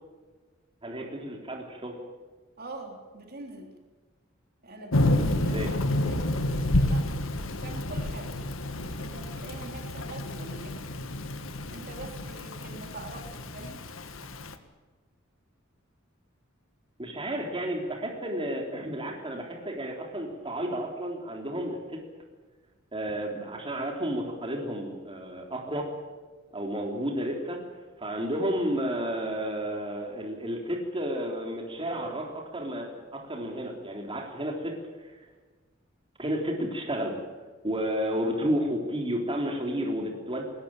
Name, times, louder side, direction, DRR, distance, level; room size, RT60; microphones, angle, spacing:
voice 1, 0.8-2.0 5.3-5.7 17.0-22.0 22.9-25.9 26.5-27.6 28.0-35.2 36.2-37.2 37.6-40.4, equal, 25° right, 1 dB, 3.6 m, -32 dB
voice 2, 2.6-3.7 4.6-7.1 7.6-8.3 9.0-11.1 11.7-13.8, right 2 dB, 50° right, 3 dB, 3.6 m, -44 dB
Thunder / Rain, 4.9-14.5, left 1 dB, 75° left, 1.7 m, -29 dB
21.0 x 19.5 x 8.9 m, 1.3 s
head